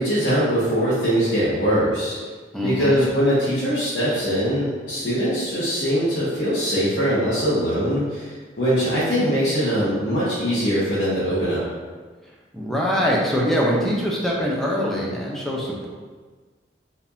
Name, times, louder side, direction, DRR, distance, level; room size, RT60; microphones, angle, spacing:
voice 1, 0.0-2.2 2.6-11.6, equal, 75° left, -12 dB, 1.2 m, -22 dB
voice 2, 2.5-3.0 12.5-15.9, equal, ahead, -4 dB, 0.6 m, -23 dB
4.8 x 3.5 x 2.7 m, 1.4 s
head